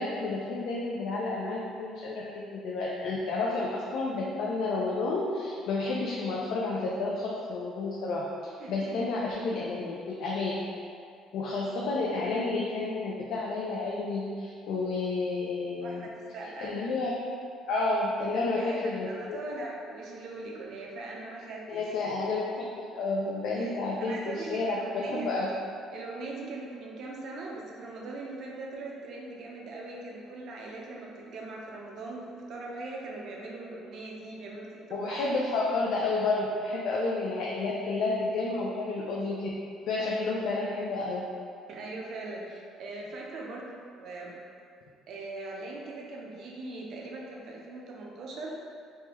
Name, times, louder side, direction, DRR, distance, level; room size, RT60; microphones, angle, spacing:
voice 1, 0.0-2.2 2.5-8.3 8.7-10.6 11.3-16.1 16.6-17.1 17.7-19.4 21.7-25.5 34.9-39.5 39.9-41.2, left 3 dB, 75° left, -4 dB, 0.4 m, -30 dB
voice 2, 8.6-9.0 15.8-16.7 18.3-21.8 23.5-25.3 25.9-35.2 40.0-40.3 41.7-44.3 45.1-48.6, right 2 dB, 60° right, -2 dB, 0.5 m, -40 dB
3.2 x 2.2 x 2.9 m, 2.3 s
cardioid pair, 130°, 0 cm